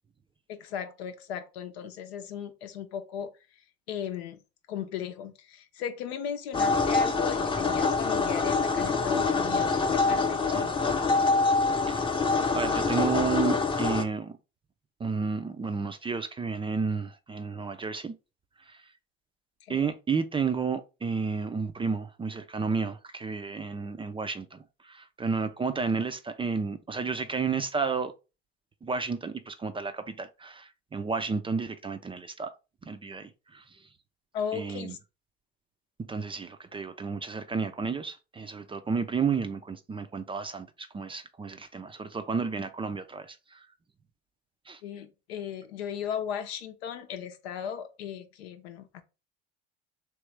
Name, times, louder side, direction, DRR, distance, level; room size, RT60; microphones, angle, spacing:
voice 1, 0.5-3.3 3.9-4.4 4.7-10.8 19.7-19.9 34.3-35.0 44.8-49.0, left 8 dB, 75° left, 0.7 m, -36 dB
sound 1, 6.5-14.0, left 4 dB, 15° left, 0.7 m, -25 dB
voice 2, 12.5-14.4 15.0-18.1 18.7-18.8 19.7-28.1 28.8-32.5 32.8-33.8 34.5-35.0 36.1-43.7 44.7-44.8, right 5 dB, 15° right, 0.4 m, -32 dB
3.2 x 3.0 x 3.2 m
hypercardioid pair, 70°, 31 cm